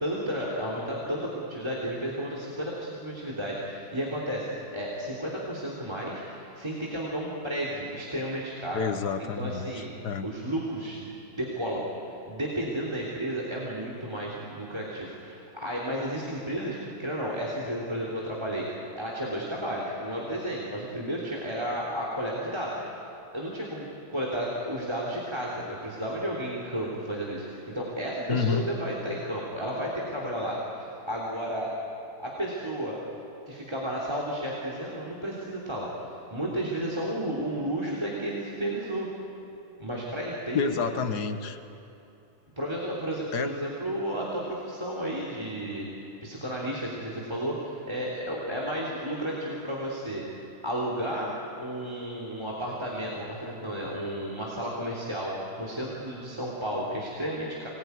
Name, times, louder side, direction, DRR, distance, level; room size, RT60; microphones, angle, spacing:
voice 1, 0.0-4.5 4.7-8.8 9.2-9.9 10.2-11.8 12.3-18.7 18.9-22.8 23.3-30.6 31.1-31.7 32.2-33.0 33.5-35.9 36.3-39.1 39.8-40.9 42.6-50.2 50.6-51.3 51.6-57.7, right 1 dB, 15° right, -4 dB, 3.2 m, -32 dB
voice 2, 8.7-10.3 28.3-28.6 40.5-41.6 43.3-43.5, left 6 dB, 90° left, 8 dB, 1.8 m, -29 dB
24.5 x 20.0 x 9.6 m, 2.8 s
omnidirectional pair, 1.7 m